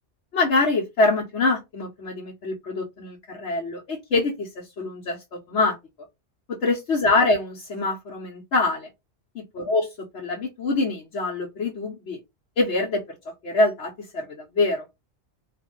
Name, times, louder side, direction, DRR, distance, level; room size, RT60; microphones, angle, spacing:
voice 1, 0.3-5.8 6.5-8.9 9.3-9.8 10.1-12.2 12.6-13.2 13.4-14.9, left 3 dB, 75° left, 1.2 m, -25 dB
2.9 x 2.6 x 3.7 m
omnidirectional pair, 1.2 m